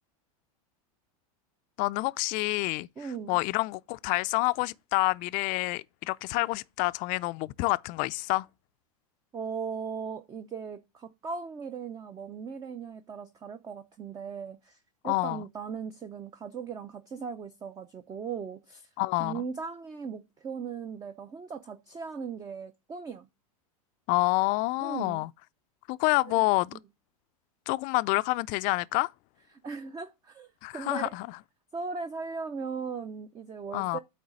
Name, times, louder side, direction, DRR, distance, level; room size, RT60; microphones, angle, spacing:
voice 1, 1.8-2.9 3.3-8.5 15.0-15.4 19.0-19.4 24.1-25.3 25.9-26.7 27.7-29.1 30.6-31.4 33.7-34.0, left 22 dB, 45° left, 0.4 m, -28 dB
voice 2, 3.0-3.4 9.3-14.8 15.0-18.9 19.2-23.3 24.8-25.2 26.2-26.4 29.6-31.1 31.7-34.0, right 5 dB, 20° right, 0.6 m, -38 dB
8.7 x 3.2 x 6.2 m
hypercardioid pair, 115°, 19 cm